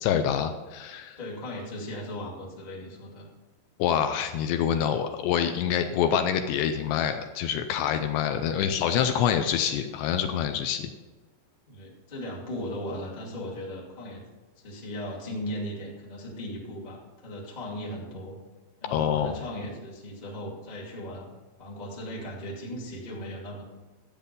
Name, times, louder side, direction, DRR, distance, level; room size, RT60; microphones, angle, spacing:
voice 1, 0.0-1.2 3.8-10.9 18.9-19.4, left 9 dB, 80° left, 7 dB, 2.6 m, -26 dB
voice 2, 1.2-3.3 11.7-14.2 14.5-18.4 18.8-21.3 21.6-23.7, equal, 20° left, -4 dB, 1.2 m, -37 dB
12.5 x 8.6 x 5.3 m, 1.2 s
omnidirectional pair, 5.2 m